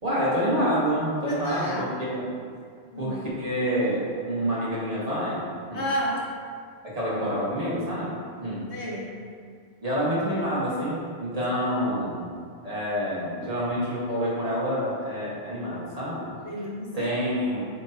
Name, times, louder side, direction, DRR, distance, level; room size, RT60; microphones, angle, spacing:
voice 1, 0.0-2.3 3.0-5.8 6.8-8.1 8.4-8.6 9.8-12.2 12.6-16.3 16.9-17.6, equal, 35° right, -8 dB, 1.6 m, -27 dB
voice 2, 1.3-1.9 2.9-3.3 5.7-6.2 8.7-9.1 16.4-17.1, equal, 85° left, -3 dB, 1.3 m, -31 dB
7.7 x 4.4 x 2.8 m, 2.1 s
omnidirectional pair, 1.1 m